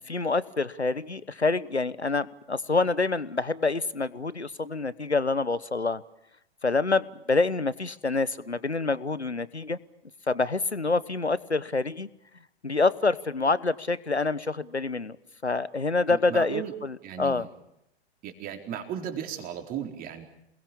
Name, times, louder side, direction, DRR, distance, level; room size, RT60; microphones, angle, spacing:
voice 1, 0.1-6.0 6.6-9.8 10.3-12.1 12.6-15.2 15.4-17.5, left 3 dB, 90° left, 19 dB, 1.2 m, -27 dB
voice 2, 16.1-16.7 17.0-17.5 18.2-20.2, right 9 dB, 25° right, 6 dB, 4.1 m, -35 dB
28.0 x 21.5 x 7.1 m, 0.82 s
figure-of-eight pair, 110°, 32 cm